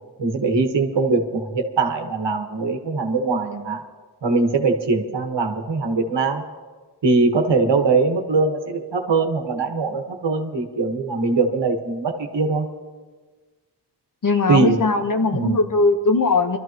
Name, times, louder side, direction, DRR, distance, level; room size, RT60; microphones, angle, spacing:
voice 1, 0.2-3.8 4.2-6.4 7.0-12.7 14.5-14.8 15.3-15.6, right 3 dB, 85° right, 4 dB, 1.6 m, -21 dB
voice 2, 14.2-16.6, left 3 dB, 50° left, 5 dB, 1.2 m, -19 dB
24.5 x 13.0 x 3.0 m, 1.4 s
wide cardioid pair, 95°, 42 cm